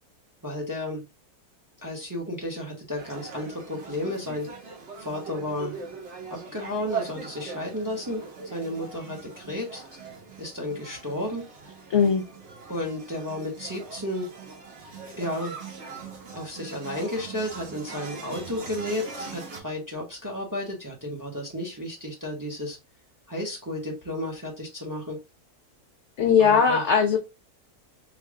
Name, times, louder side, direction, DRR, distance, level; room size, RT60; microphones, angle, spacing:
voice 1, 0.4-1.1 1.8-4.5 5.0-5.8 6.3-8.2 8.5-9.8 10.4-11.5 12.7-14.3 15.2-15.6 16.3-22.8 23.3-25.2 26.4-26.8, left 1 dB, 15° right, 0.7 m, -32 dB
sound 1, 3.0-19.6, right 5 dB, 50° right, 1.1 m, -41 dB
voice 2, 11.9-12.2 26.2-27.2, left 6 dB, 70° left, 0.7 m, -19 dB
3.3 x 2.4 x 3.5 m
omnidirectional pair, 1.6 m